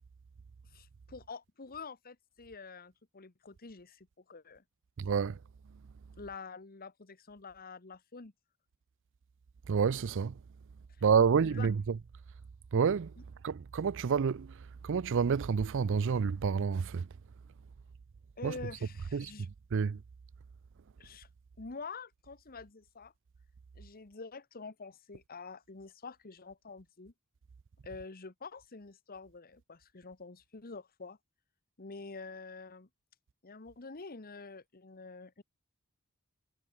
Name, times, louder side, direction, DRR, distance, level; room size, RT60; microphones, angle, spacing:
voice 1, 0.7-4.6 6.2-8.3 11.5-11.7 18.4-19.5 21.0-21.3 21.6-23.1 23.8-27.1 27.8-31.2 31.8-32.9 33.4-35.4, left 4 dB, 40° left, 1.2 m, -47 dB
voice 2, 5.0-5.4 9.7-10.4 11.0-12.0 12.7-13.1 13.4-17.1 18.4-18.6 19.1-20.0, right 6 dB, 55° right, 0.4 m, -29 dB
head